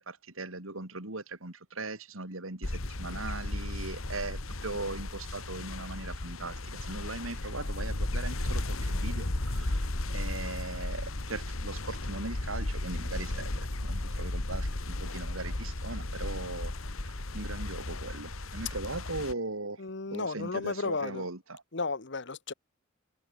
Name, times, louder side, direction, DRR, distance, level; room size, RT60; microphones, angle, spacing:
voice 1, 0.0-16.7 17.0-19.8 20.1-21.6, right 2 dB, 85° right, 3.8 m, -39 dB
sound 1, 2.6-19.3, left 2 dB, 90° left, 2.0 m, -35 dB
voice 2, 19.8-21.2 21.7-22.5, left 3 dB, 60° left, 1.3 m, -33 dB
head